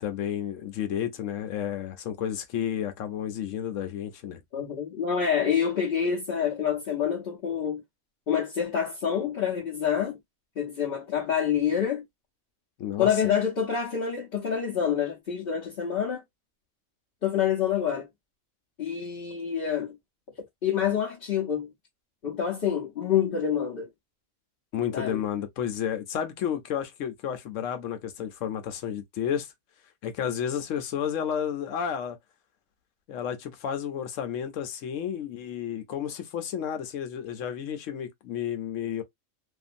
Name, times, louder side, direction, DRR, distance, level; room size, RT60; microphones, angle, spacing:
voice 1, 0.0-4.4 12.8-13.1 24.7-29.5 30.0-32.2 33.1-39.0, left 9 dB, 80° left, 1.0 m, -31 dB
voice 2, 4.5-7.8 8.3-10.2 10.6-12.0 13.0-16.2 17.2-18.1 18.8-20.0 20.6-21.7 22.2-23.9 24.9-25.2, left 8 dB, 50° left, 0.9 m, -27 dB
2.6 x 2.5 x 2.5 m
omnidirectional pair, 1.3 m